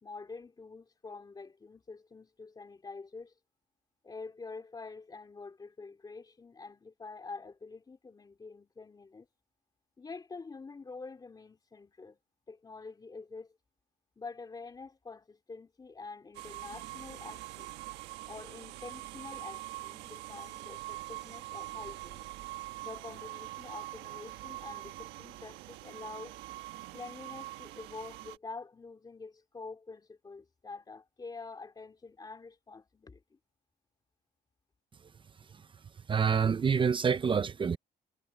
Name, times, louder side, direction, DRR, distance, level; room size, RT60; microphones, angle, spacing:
voice 1, 0.0-3.3 4.0-9.3 10.0-12.2 12.5-13.6 14.2-17.8 18.3-22.3 22.8-26.4 26.9-33.4, left 4 dB, 25° left, 2.7 m, -47 dB
sound 1, 16.3-28.4, right 17 dB, 90° right, 1.4 m, -44 dB
voice 2, 36.1-37.8, right 6 dB, 30° right, 0.8 m, -27 dB
cardioid pair, 110°, 17 cm